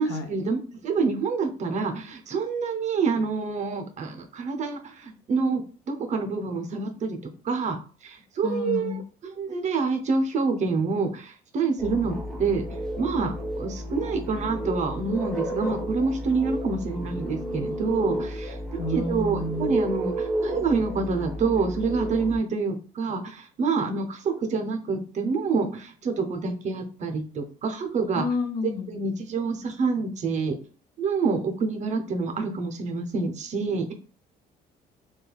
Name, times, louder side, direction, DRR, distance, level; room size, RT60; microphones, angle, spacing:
voice 1, 0.0-5.6 5.9-7.2 7.4-7.8 8.0-12.6 13.0-18.6 18.9-28.3 28.6-30.6 31.0-33.9, right 4 dB, 45° right, 5 dB, 0.6 m, -27 dB
voice 2, 8.4-9.0 18.8-19.8 28.1-28.9, left 3 dB, 90° left, 6 dB, 0.6 m, -30 dB
sound 1, 11.8-22.4, right 1 dB, 5° left, 0.7 m, -32 dB
3.2 x 2.2 x 2.3 m, 0.39 s
cardioid pair, 110°, 17 cm